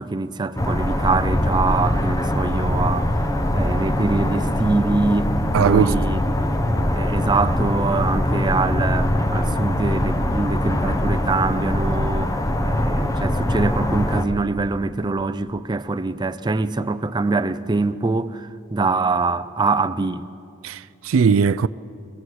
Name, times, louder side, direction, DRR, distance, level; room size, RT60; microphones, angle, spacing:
voice 1, 0.0-3.1 3.5-5.3 5.6-6.2 6.9-20.3, right 3 dB, 20° right, 0.5 m, -24 dB
sound 1, 0.6-14.3, left 1 dB, 15° left, 1.0 m, -22 dB
voice 2, 5.5-5.9 20.6-21.7, right 6 dB, 90° right, 0.4 m, -18 dB
22.5 x 16.0 x 7.9 m
head